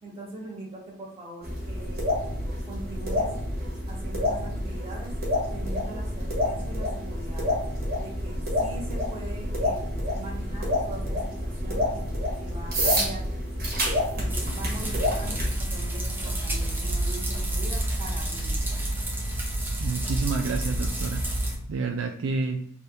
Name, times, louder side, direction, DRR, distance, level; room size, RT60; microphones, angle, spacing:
voice 1, 0.0-3.3 3.9-5.1 5.5-7.5 8.0-12.0 12.4-13.3 14.1-18.6, right 2 dB, 30° right, -4 dB, 1.3 m, -42 dB
sound 1, 1.4-15.5, left 1 dB, 45° right, 1.3 m, -28 dB
sound 2, 14.3-21.6, right 1 dB, 10° right, 0.7 m, -29 dB
voice 2, 19.8-21.2 21.7-22.6, right 4 dB, 70° right, 4 dB, 0.4 m, -29 dB
3.3 x 2.6 x 4.5 m, 0.63 s
head